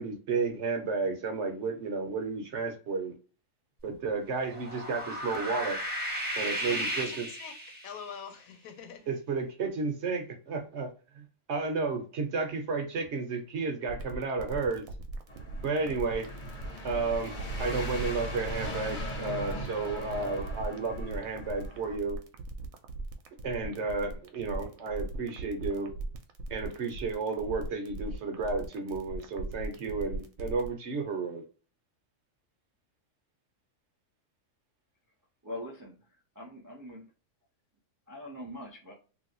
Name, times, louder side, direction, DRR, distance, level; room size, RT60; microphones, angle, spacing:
voice 1, 0.0-3.1 3.8-5.8 6.3-7.3 9.1-10.9 11.1-14.8 15.6-16.3 16.8-17.3 17.6-22.2 23.4-25.9 26.5-31.4, right 4 dB, 60° right, 1.0 m, -32 dB
sound 1, 4.4-8.1, right 1 dB, 10° right, 0.8 m, -35 dB
voice 2, 6.5-7.5 7.8-9.1, left 7 dB, 85° left, 1.1 m, -45 dB
sound 2, 13.9-30.7, right 2 dB, 80° right, 1.1 m, -39 dB
sound 3, 15.3-22.0, equal, 40° left, 1.0 m, -39 dB
voice 3, 35.4-37.1 38.1-38.9, left 1 dB, 25° right, 0.4 m, -43 dB
3.0 x 2.6 x 2.8 m
omnidirectional pair, 1.4 m